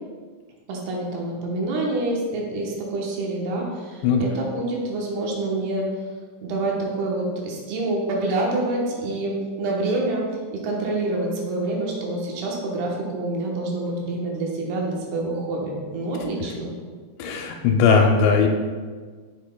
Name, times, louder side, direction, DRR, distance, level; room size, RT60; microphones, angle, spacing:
voice 1, 0.7-5.9 6.4-10.3 10.5-16.7, right 2 dB, 70° right, -2 dB, 2.6 m, -27 dB
voice 2, 17.2-18.5, left 5 dB, 80° left, 2 dB, 2.8 m, -18 dB
7.6 x 7.4 x 2.2 m, 1.5 s
omnidirectional pair, 5.3 m